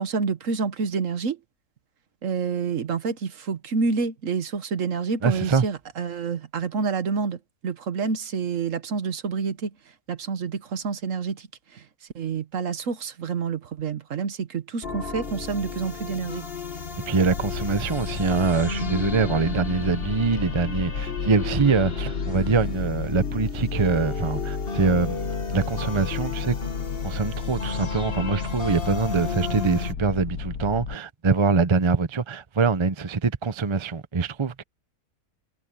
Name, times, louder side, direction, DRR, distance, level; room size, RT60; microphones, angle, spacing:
voice 1, 0.0-1.4 2.2-9.7 10.1-11.9 12.1-16.5, right 5 dB, 55° right, 1.4 m, -28 dB
voice 2, 5.2-5.7 17.1-26.5 27.0-34.6, right 4 dB, 35° right, 0.5 m, -24 dB
sound 1, 14.8-29.9, left 4 dB, 40° left, 1.7 m, -34 dB
sound 2, 17.2-30.9, left 6 dB, 70° left, 1.7 m, -32 dB
omnidirectional pair, 1.7 m